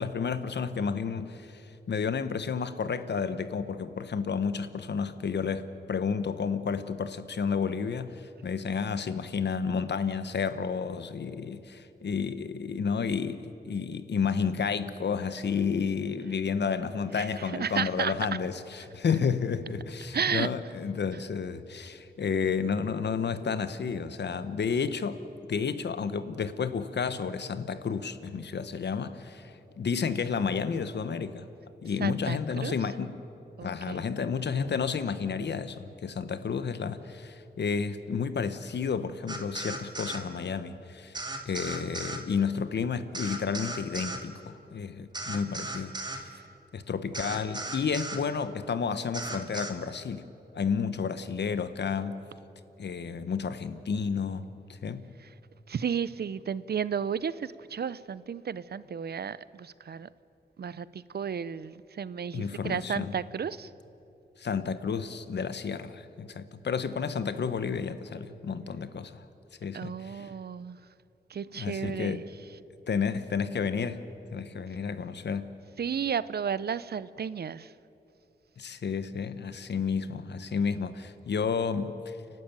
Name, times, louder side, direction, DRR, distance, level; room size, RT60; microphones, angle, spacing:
voice 1, 0.0-25.2 25.5-31.5 31.8-33.2 33.6-41.2 41.4-46.3 46.7-50.2 50.5-52.2 52.8-54.5 54.8-55.1 62.3-63.1 64.4-69.2 69.6-70.3 71.5-72.2 72.9-74.0 74.3-75.5 78.6-82.1, left 6 dB, 70° left, 12 dB, 1.1 m, -31 dB
voice 2, 17.1-18.1 20.1-20.5 32.0-32.7 33.6-34.0 46.3-46.4 55.2-55.3 55.7-60.1 60.6-63.7 69.7-70.8 71.3-72.2 75.8-77.7, right 7 dB, 65° right, 17 dB, 0.7 m, -33 dB
sound 1, 39.3-40.2 41.1-42.2 43.1-44.2 45.1-46.2 47.1-48.2 49.1-49.7, right 2 dB, 25° right, 2.2 m, -36 dB
30.0 x 12.0 x 9.2 m, 2.8 s
cardioid pair, 75°, 18 cm